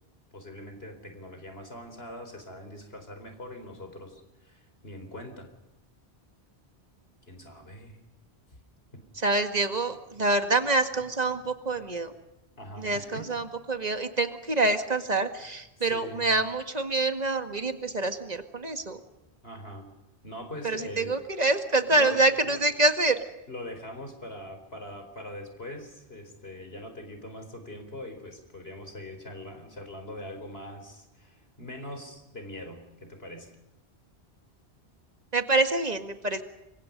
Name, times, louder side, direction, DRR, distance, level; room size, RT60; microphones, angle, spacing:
voice 1, 0.3-5.5 7.3-8.0 8.9-9.0 12.5-13.4 15.8-16.3 19.4-19.9 20.2-21.5 21.9-22.6 23.5-33.5, left 1 dB, 65° left, 6 dB, 4.6 m, -42 dB
voice 2, 9.2-12.1 12.8-19.0 20.6-23.1 35.3-36.4, right 2 dB, 40° right, 7 dB, 2.1 m, -26 dB
29.0 x 25.0 x 5.4 m, 0.93 s
omnidirectional pair, 1.1 m